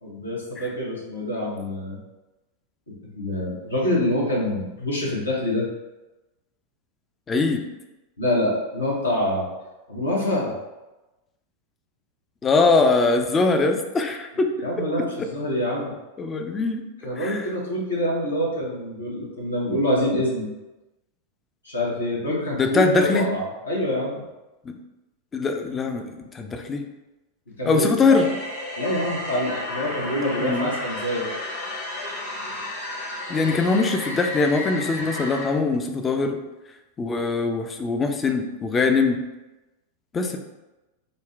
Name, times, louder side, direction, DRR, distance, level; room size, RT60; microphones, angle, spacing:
voice 1, 0.0-2.0 2.9-5.7 8.2-9.5 9.9-10.5 14.6-15.9 17.0-20.5 21.6-24.2 27.6-27.9 28.8-31.3, left 1 dB, 75° left, -4 dB, 1.1 m, -26 dB
voice 2, 7.3-7.6 12.4-14.5 16.2-16.8 17.2-17.5 22.6-23.3 24.7-24.8 25.3-26.8 27.6-28.3 30.4-30.7 33.3-36.4 37.0-39.2 40.1-40.4, left 3 dB, 20° left, 5 dB, 0.4 m, -22 dB
sound 1, 28.1-35.5, left 1 dB, 55° left, 1.4 m, -32 dB
3.9 x 2.2 x 3.4 m, 1.0 s
figure-of-eight pair, 90°, 0 cm